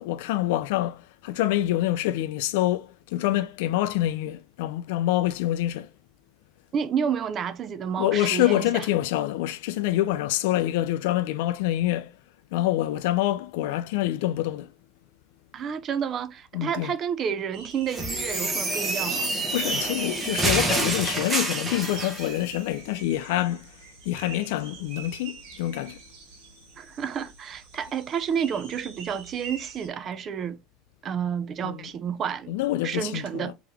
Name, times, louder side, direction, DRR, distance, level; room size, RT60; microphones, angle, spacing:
voice 1, 0.0-5.9 8.0-12.2 12.5-14.7 16.5-16.9 19.1-19.2 19.5-23.8 24.1-26.0 31.6-31.9 32.5-33.5, left 14 dB, 75° left, 0.4 m, -26 dB
voice 2, 6.7-8.8 15.5-19.3 26.8-30.6 31.0-32.5 32.8-33.5, right 7 dB, 30° right, 0.4 m, -30 dB
sound 1, 17.5-29.9, right 5 dB, 65° right, 1.4 m, -44 dB
sound 2, 17.9-22.3, right 2 dB, 15° right, 1.0 m, -27 dB
3.6 x 2.9 x 3.4 m
supercardioid pair, 145°, 0 cm